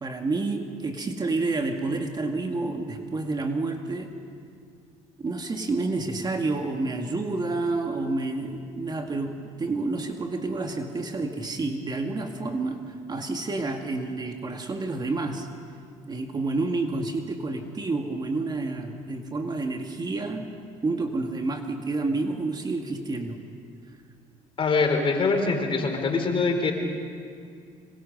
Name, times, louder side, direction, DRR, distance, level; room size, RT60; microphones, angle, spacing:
voice 1, 0.0-4.1 5.2-15.5 16.1-20.5 20.8-23.4, right 3 dB, 30° right, 4 dB, 2.0 m, -29 dB
voice 2, 24.6-26.7, left 4 dB, 40° left, 4 dB, 4.1 m, -23 dB
26.0 x 23.0 x 5.4 m, 2.3 s
supercardioid pair, 85°, 14 cm